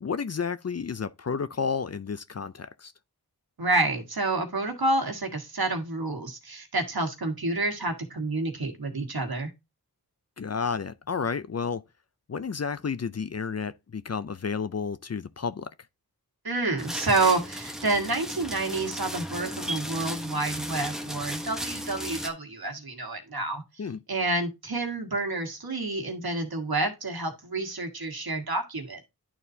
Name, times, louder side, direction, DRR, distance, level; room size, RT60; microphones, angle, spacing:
voice 1, 0.0-2.9 10.4-11.8 12.3-15.7 23.8-24.0, left 5 dB, 45° left, 0.5 m, -31 dB
voice 2, 3.6-9.5 16.4-23.6 24.1-29.1, right 2 dB, 70° right, 1.5 m, -29 dB
sound 1, 16.8-22.3, equal, ahead, 1.1 m, -35 dB
11.0 x 4.2 x 2.7 m
wide cardioid pair, 50°, 38 cm